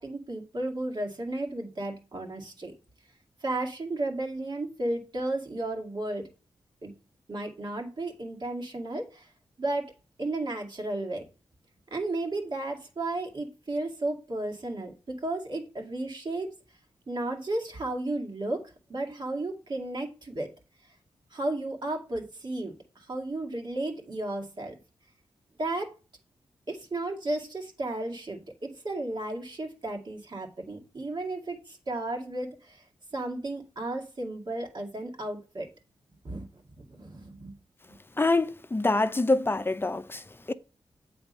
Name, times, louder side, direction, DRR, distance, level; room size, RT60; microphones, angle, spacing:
voice 1, 0.0-2.7 3.4-6.3 6.8-6.9 7.3-9.3 9.6-9.9 10.2-11.2 11.9-16.5 17.1-20.5 21.3-22.7 23.1-24.7 25.6-25.9 26.7-32.8 33.1-35.7 36.2-37.5, right 2 dB, 50° right, 2.0 m, -33 dB
voice 2, 38.2-40.5, left 2 dB, 25° left, 0.6 m, -26 dB
8.1 x 3.5 x 5.3 m
cardioid pair, 60°, 10 cm